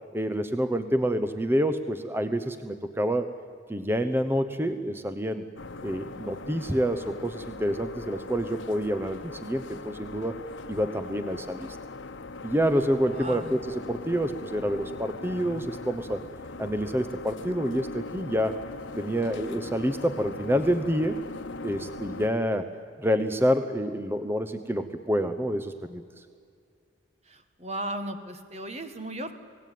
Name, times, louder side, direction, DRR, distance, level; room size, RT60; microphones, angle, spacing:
voice 1, 0.1-3.3 3.7-5.5 5.8-10.4 10.7-11.8 12.4-16.2 16.6-18.6 19.0-21.2 21.6-22.6 23.0-26.0, equal, 10° right, 10 dB, 0.9 m, -27 dB
sound 1, 5.6-22.3, left 3 dB, 85° left, 1.0 m, -40 dB
voice 2, 13.1-13.6 27.3-29.3, right 1 dB, 35° right, 8 dB, 1.8 m, -36 dB
27.5 x 18.5 x 9.4 m, 2.2 s
head